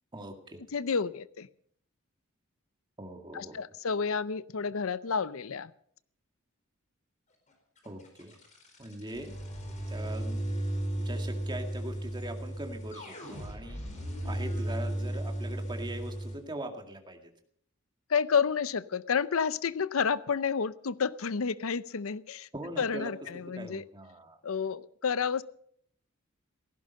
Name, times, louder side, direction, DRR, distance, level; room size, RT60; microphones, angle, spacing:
voice 1, 0.1-0.6 3.0-3.6 7.8-8.4 8.8-9.4 9.9-10.5 11.0-13.8 14.2-17.3 22.5-23.1 23.6-24.4, right 1 dB, 20° right, 4 dB, 2.1 m, -41 dB
voice 2, 0.7-1.5 3.3-5.7 18.1-22.5 22.8-23.8 24.4-25.4, left 6 dB, 80° left, 17 dB, 0.6 m, -30 dB
sound 1, 7.8-16.4, right 1 dB, 35° left, 4.4 m, -35 dB
17.5 x 15.0 x 5.4 m, 0.64 s
head